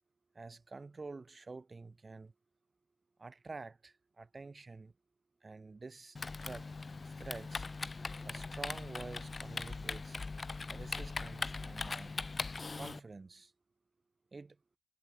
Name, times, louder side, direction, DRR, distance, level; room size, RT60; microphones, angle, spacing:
voice 1, 0.3-2.3 3.2-4.9 5.4-6.7 7.0-7.7 8.2-10.2 10.7-12.1 12.7-13.5 14.3-14.6, right 3 dB, 35° right, 1.0 m, -48 dB
Typing, 6.2-13.0, left 3 dB, 35° left, 1.1 m, -40 dB
hypercardioid pair, 45°, 0 cm